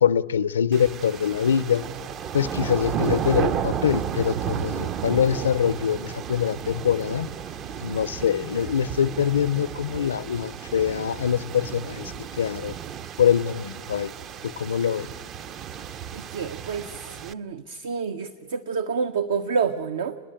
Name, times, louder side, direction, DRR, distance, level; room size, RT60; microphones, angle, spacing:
voice 1, 0.0-1.8 2.3-7.3 7.8-12.7 13.2-14.1 14.4-15.1, left 8 dB, 85° left, 15 dB, 0.5 m, -24 dB
sound 1, 0.7-17.3, right 9 dB, 35° right, 0.5 m, -33 dB
voice 2, 16.1-17.0 17.2-20.2, right 5 dB, 75° right, 10 dB, 0.6 m, -28 dB
30.0 x 10.0 x 8.9 m, 2.3 s
hypercardioid pair, 105°, 0 cm